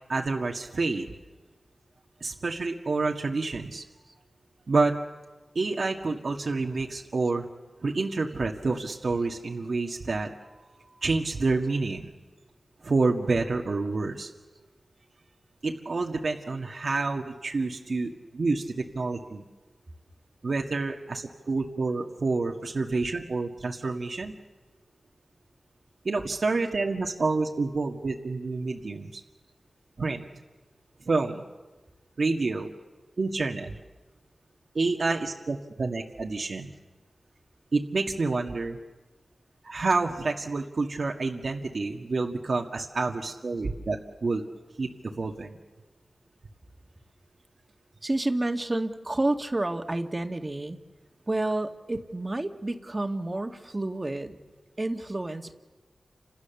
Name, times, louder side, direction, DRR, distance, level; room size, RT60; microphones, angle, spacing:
voice 1, 0.1-1.1 2.2-3.8 4.7-4.9 5.6-7.5 7.8-12.1 12.8-14.3 15.6-19.5 20.4-24.3 26.1-29.2 30.0-30.2 31.1-31.4 32.2-32.7 33.2-33.7 34.8-36.7 37.7-38.8 39.6-44.4 44.8-45.6, right 3 dB, 65° right, 1 dB, 1.8 m, -28 dB
voice 2, 48.0-50.8 51.3-54.4 54.8-55.5, right 2 dB, 30° right, 5 dB, 2.0 m, -29 dB
30.0 x 27.0 x 7.1 m, 1.3 s
wide cardioid pair, 60°, 0 cm